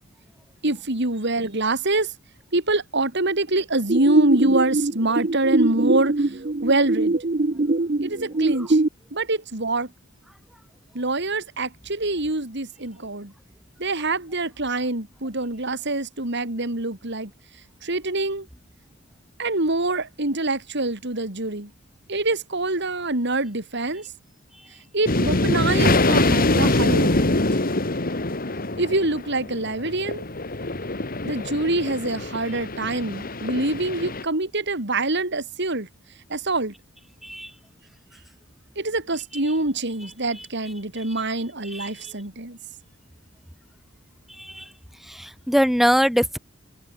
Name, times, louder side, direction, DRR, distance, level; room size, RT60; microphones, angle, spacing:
voice 1, 0.6-2.1 2.5-6.1 6.6-7.2 8.0-8.8 9.1-9.9 11.0-13.3 13.8-17.3 17.8-18.5 19.4-21.7 22.1-24.1 24.9-27.3 28.8-30.2 31.3-35.9 36.3-36.7 38.8-42.6, right 2 dB, 60° right, 3.6 m, -25 dB
sound 1, 3.9-8.9, right 2 dB, 40° right, 0.8 m, -23 dB
sound 2, 25.1-34.2, left 2 dB, 45° left, 2.4 m, -24 dB
voice 2, 45.1-46.4, equal, ahead, 1.2 m, -22 dB
open air
head